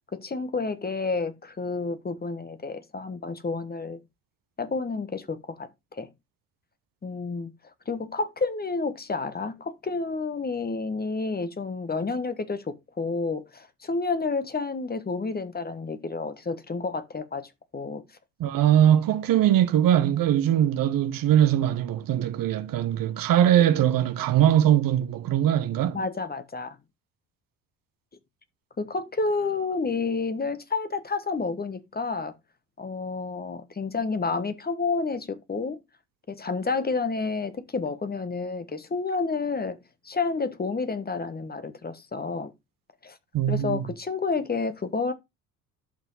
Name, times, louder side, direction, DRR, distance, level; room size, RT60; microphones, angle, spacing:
voice 1, 0.1-4.0 4.6-6.1 7.0-7.5 7.9-18.0 18.6-18.7 25.9-26.8 28.8-32.3 32.8-35.8 36.3-39.8 40.0-42.5 43.0-43.2 43.5-45.1, left 4 dB, 20° left, 1.3 m, -30 dB
voice 2, 18.4-26.0 43.3-43.8, right 11 dB, 50° right, 1.1 m, -21 dB
11.5 x 5.6 x 3.9 m
figure-of-eight pair, 55°, 44 cm